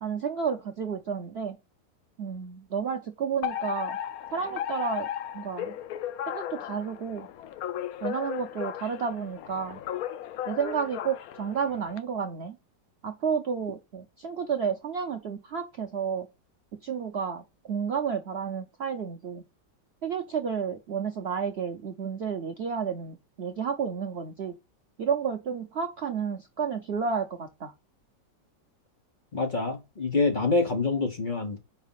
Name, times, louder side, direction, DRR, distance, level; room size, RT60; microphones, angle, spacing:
voice 1, 0.0-1.6 2.2-4.0 4.3-5.1 5.3-5.7 6.3-7.3 8.0-9.8 10.4-12.6 13.0-16.3 16.8-19.4 20.0-24.5 25.0-27.7, right 6 dB, 85° right, 0.5 m, -31 dB
Alarm, 3.4-12.0, left 11 dB, 70° left, 0.9 m, -35 dB
voice 2, 29.3-31.6, left 3 dB, 35° left, 0.9 m, -26 dB
4.9 x 4.5 x 5.5 m
omnidirectional pair, 1.9 m